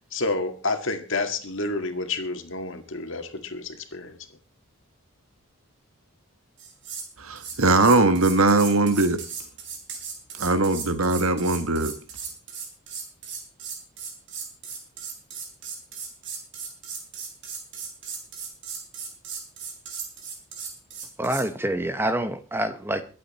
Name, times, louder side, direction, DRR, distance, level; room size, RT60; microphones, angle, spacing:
voice 1, 0.1-4.2, left 3 dB, 55° left, 2.0 m, -29 dB
sound 1, 6.6-7.1 7.4-21.5, right 6 dB, 55° right, 4.0 m, -37 dB
voice 2, 7.2-9.2 10.4-11.9, right 2 dB, 70° right, 1.6 m, -20 dB
voice 3, 21.2-23.0, right 1 dB, 10° right, 1.0 m, -26 dB
22.5 x 8.6 x 4.2 m
head